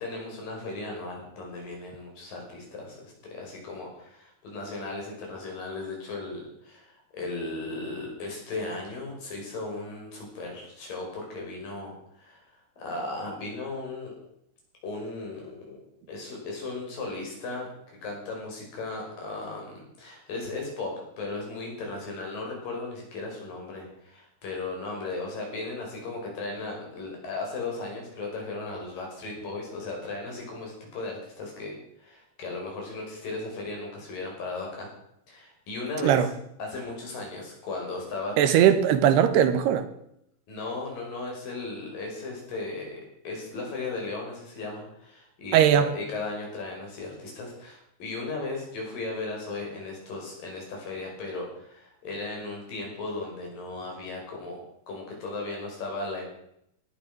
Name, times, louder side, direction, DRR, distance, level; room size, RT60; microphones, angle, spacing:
voice 1, 0.0-12.5 12.8-14.1 14.8-17.7 18.0-34.9 35.3-36.3 36.6-38.7 40.5-56.3, left 3 dB, 60° left, 0 dB, 6.8 m, -36 dB
voice 2, 38.4-39.9 45.5-45.9, right 9 dB, 85° right, 11 dB, 3.2 m, -19 dB
18.0 x 10.5 x 6.2 m, 0.76 s
omnidirectional pair, 4.6 m